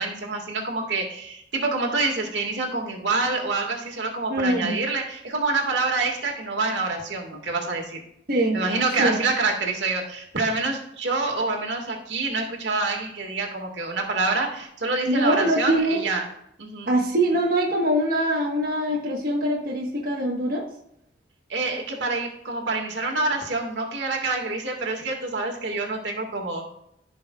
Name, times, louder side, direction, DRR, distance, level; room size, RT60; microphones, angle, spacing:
voice 1, 0.0-8.0 8.5-16.2 16.6-16.9 21.5-26.6, right 3 dB, 85° right, 2 dB, 1.7 m, -27 dB
voice 2, 4.3-4.7 8.3-8.6 9.0-9.2 15.1-16.1 16.9-20.7, right 1 dB, 55° right, -2 dB, 1.2 m, -23 dB
15.5 x 5.3 x 2.3 m, 0.76 s
head